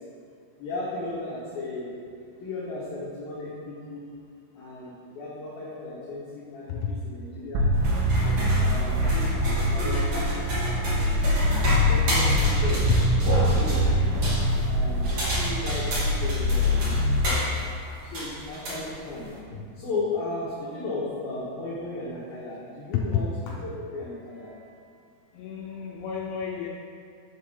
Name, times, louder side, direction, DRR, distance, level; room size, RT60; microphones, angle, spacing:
voice 1, 0.6-2.0 2.4-4.1 4.5-7.7 8.1-8.9 9.1-11.1 11.5-12.9 13.4-14.0 14.4-17.6 18.0-23.3 23.7-24.8, left 2 dB, 65° left, -7 dB, 2.7 m, -36 dB
sound 1, 7.6-17.4, left 1 dB, 85° right, 3.5 m, -24 dB
sound 2, 7.7-19.4, equal, 40° right, 2.7 m, -32 dB
voice 2, 8.2-8.7 12.9-13.0 22.9-23.6 25.3-26.7, left 7 dB, 80° left, -1 dB, 2.9 m, -31 dB
13.0 x 7.7 x 3.7 m, 2.3 s
omnidirectional pair, 5.7 m